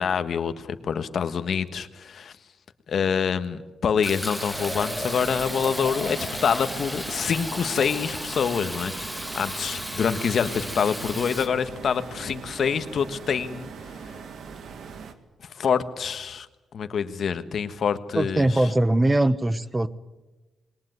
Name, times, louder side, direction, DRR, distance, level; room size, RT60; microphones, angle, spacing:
voice 1, 0.0-2.3 2.9-14.0 15.5-16.5 16.7-18.6, left 7 dB, 65° left, 10 dB, 1.4 m, -26 dB
Fill (with liquid), 4.0-11.5, equal, ahead, 2.1 m, -34 dB
sound 1, 4.4-15.1, right 5 dB, 70° right, 1.9 m, -41 dB
voice 2, 18.1-19.9, right 1 dB, 20° right, 16 dB, 1.1 m, -21 dB
21.0 x 19.0 x 9.4 m, 1.1 s
cardioid pair, 75°, 0 cm